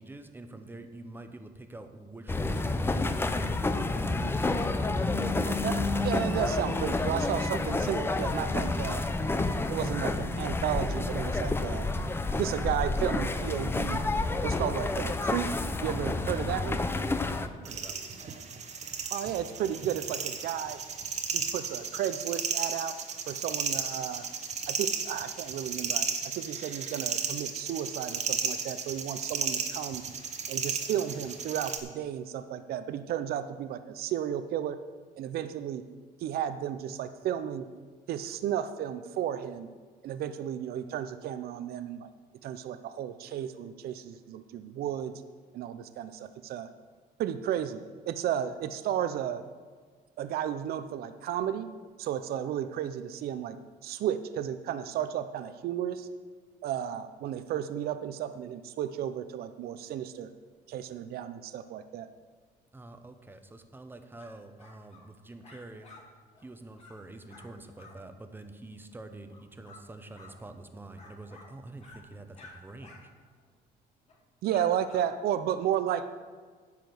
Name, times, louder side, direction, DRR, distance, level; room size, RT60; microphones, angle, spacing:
voice 1, 0.0-3.6 17.3-18.1 62.7-65.9 66.4-73.1, right 2 dB, 10° right, 8 dB, 0.9 m, -47 dB
sound 1, 2.3-17.5, left 2 dB, 15° left, 0.6 m, -29 dB
voice 2, 5.4-5.8 6.0-9.0 9.7-11.9 12.4-14.0 14.4-15.5 15.8-16.8 19.1-20.8 21.3-23.0 23.3-24.3 24.7-30.0 30.5-34.8 35.2-35.8 36.2-37.7 38.1-39.7 40.0-42.1 42.4-45.1 45.5-46.7 47.2-49.4 50.2-51.7 52.0-53.6 53.8-56.1 56.6-60.3 60.7-62.1 74.4-76.1, right 10 dB, 65° right, 11 dB, 0.6 m, -33 dB
sound 2, 17.6-31.8, right 5 dB, 45° right, 1.2 m, -34 dB
sound 3, 64.2-64.3 64.6-65.1 65.4-66.0 66.3-66.5 66.7-67.0 67.3-67.5 67.8-68.0 69.3-69.8 70.1-70.4 71.0-71.5 71.8-72.0 72.3-72.5 72.8-73.0 73.3-73.4 74.1-74.2 74.5-75.1, left 3 dB, 40° left, 2.9 m, -52 dB
10.5 x 5.1 x 7.8 m, 1.5 s
cardioid pair, 110°, 17 cm